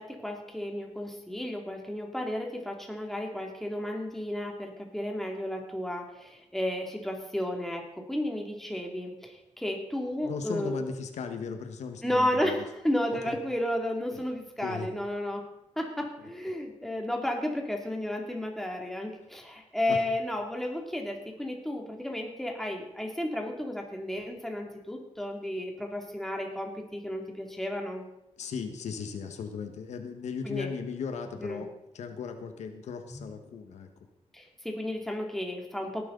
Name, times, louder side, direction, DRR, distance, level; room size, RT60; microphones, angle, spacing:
voice 1, 0.0-10.8 12.0-15.4 15.8-28.0 30.4-30.7 31.4-31.6 33.1-33.2 34.3-36.1, left 1 dB, 5° left, 1 dB, 2.5 m, -33 dB
voice 2, 10.2-12.6 13.3-13.4 14.1-14.2 14.6-14.9 19.9-20.0 28.4-31.7 31.9-33.9, left 6 dB, 80° left, 6 dB, 1.5 m, -37 dB
18.0 x 11.0 x 4.0 m, 0.88 s
cardioid pair, 100°, 12 cm